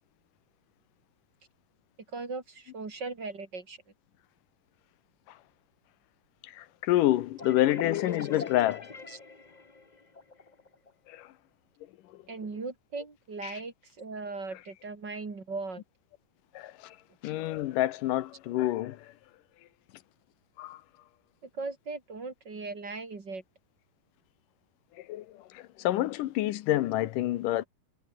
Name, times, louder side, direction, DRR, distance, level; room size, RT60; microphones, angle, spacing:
voice 1, 2.1-3.8 9.1-9.2 12.3-15.8 21.4-23.4, right 3 dB, 30° right, 3.1 m, -38 dB
voice 2, 6.4-8.9 11.1-11.3 13.4-13.6 16.5-17.0 17.2-19.1 20.6-20.8 25.0-27.7, left 15 dB, 75° left, 2.4 m, -28 dB
sound 1, 7.4-10.9, left 3 dB, 45° left, 0.5 m, -43 dB
omnidirectional pair, 4.0 m